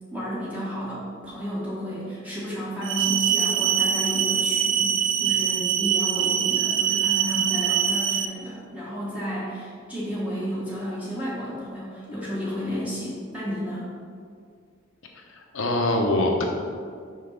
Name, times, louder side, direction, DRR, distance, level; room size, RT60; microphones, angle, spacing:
voice 1, 0.1-13.9, equal, 10° right, -9 dB, 1.3 m, -32 dB
sound 1, 2.8-8.2, right 9 dB, 65° right, 0.4 m, -23 dB
voice 2, 15.1-16.4, left 1 dB, 85° left, 1 dB, 0.9 m, -24 dB
5.6 x 5.4 x 4.0 m, 2.2 s
head